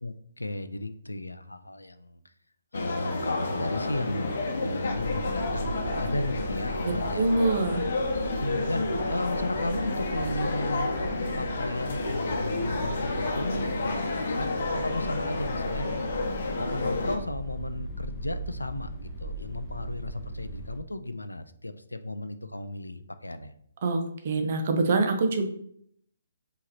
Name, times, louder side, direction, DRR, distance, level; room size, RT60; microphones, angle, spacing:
voice 1, 0.0-2.2 2.7-7.2 8.4-10.9 11.4-15.9 16.6-23.5, left 1 dB, 85° left, 11 dB, 0.4 m, -34 dB
sound 1, 2.7-17.2, left 2 dB, 55° left, 0.8 m, -30 dB
sound 2, 4.9-20.8, right 1 dB, 15° left, 0.9 m, -39 dB
voice 2, 6.8-7.8 23.8-25.5, right 3 dB, 45° right, 5 dB, 0.7 m, -25 dB
4.8 x 2.9 x 2.9 m, 0.67 s
figure-of-eight pair, 135°, 0 cm